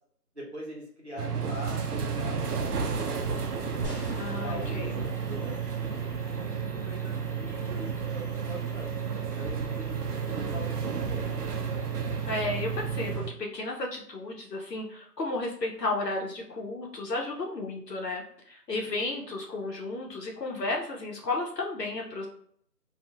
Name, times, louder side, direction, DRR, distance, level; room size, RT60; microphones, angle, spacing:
voice 1, 0.3-3.6 4.4-8.9 9.3-10.0 10.4-11.3 18.8-18.9, equal, 45° right, -5 dB, 0.9 m, -43 dB
sound 1, 1.2-13.3, right 6 dB, 70° right, 0.5 m, -32 dB
sound 2, 3.1-13.1, equal, 5° left, 0.3 m, -50 dB
sound 3, 3.8-5.3 6.1-6.2, left 1 dB, 40° left, 1.1 m, -42 dB
voice 2, 4.2-5.0 12.3-22.3, left 2 dB, 80° left, 0 dB, 0.8 m, -33 dB
2.4 x 2.3 x 2.7 m, 0.64 s
figure-of-eight pair, 175°, 48 cm